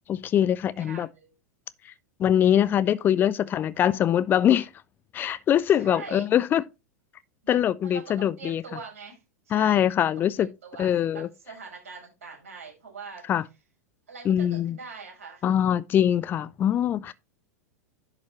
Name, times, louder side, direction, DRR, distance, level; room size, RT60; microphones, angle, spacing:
voice 1, 0.1-1.1 2.2-4.7 5.1-6.6 7.5-8.6 9.5-10.5 10.8-11.3 13.3-13.4 14.2-14.8 15.4-17.1, left 10 dB, 25° left, 0.5 m, -23 dB
voice 2, 0.7-1.3 5.8-6.3 7.4-13.2 14.1-15.4, right 5 dB, 60° right, 5.7 m, -43 dB
11.0 x 5.7 x 3.0 m
figure-of-eight pair, 90°, 9 cm